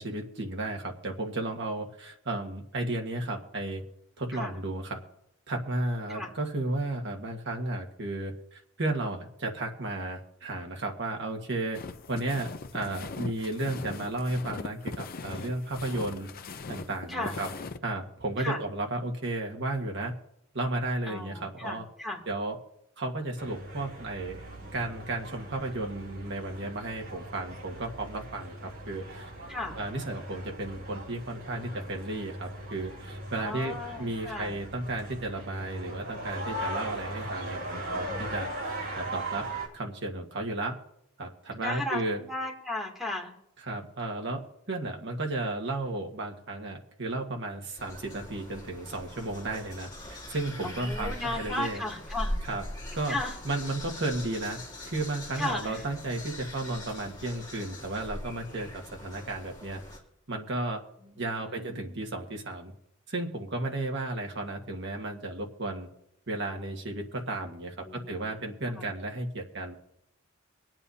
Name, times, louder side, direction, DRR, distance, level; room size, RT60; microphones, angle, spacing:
voice 1, 0.0-3.8 4.2-5.0 5.5-11.8 12.1-16.3 16.7-17.5 17.8-20.1 20.5-21.8 22.2-22.6 23.0-24.4 24.7-29.3 29.7-39.5 39.7-40.8 41.2-42.2 43.6-51.8 52.5-52.6 52.9-53.2 53.4-54.6 54.8-59.8 60.3-60.8 61.2-62.7 63.1-65.9 66.3-69.7, right 2 dB, 60° right, 2 dB, 1.6 m, -33 dB
sound 1, 11.7-17.8, left 3 dB, 45° left, 0.6 m, -40 dB
voice 2, 21.1-22.2 29.5-29.8 33.3-34.6 37.4-38.3 41.6-43.3 50.7-52.4 53.1-53.3 55.4-55.8 61.0-62.1 67.8-68.2 68.7-68.9, left 2 dB, ahead, -2 dB, 2.7 m, -36 dB
sound 2, 23.4-39.7, right 1 dB, 80° right, 4.3 m, -39 dB
sound 3, 47.8-60.0, left 1 dB, 20° left, 2.7 m, -41 dB
24.0 x 9.0 x 2.8 m, 0.77 s
head